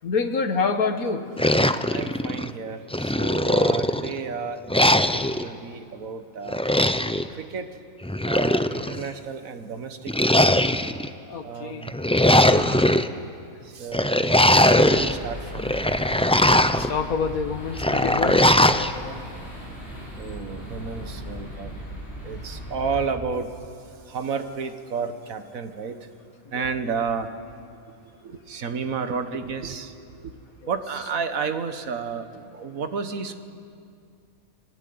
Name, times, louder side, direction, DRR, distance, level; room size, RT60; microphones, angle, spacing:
voice 1, 0.0-1.3 3.7-3.8 11.3-11.8 16.5-19.2 26.6-26.7, left 5 dB, 85° left, 7 dB, 1.9 m, -27 dB
sound 1, 1.4-2.5 2.9-4.1 4.7-5.4 6.5-7.3 8.0-9.0 10.1-11.1 11.8-13.1 13.9-15.1 15.5-16.9 17.8-18.9, left 1 dB, 10° left, 0.3 m, -20 dB
voice 2, 1.9-6.6 7.3-7.8 8.3-10.1 11.4-11.9 12.4-12.7 13.6-15.7 20.1-21.7 22.2-23.6 24.1-26.1 26.5-27.3 28.1-30.3 30.7-33.4, right 5 dB, 75° right, 8 dB, 1.7 m, -32 dB
sound 2, 14.7-23.0, equal, 45° left, 7.1 m, -38 dB
28.5 x 20.0 x 9.6 m, 2.4 s
omnidirectional pair, 1.5 m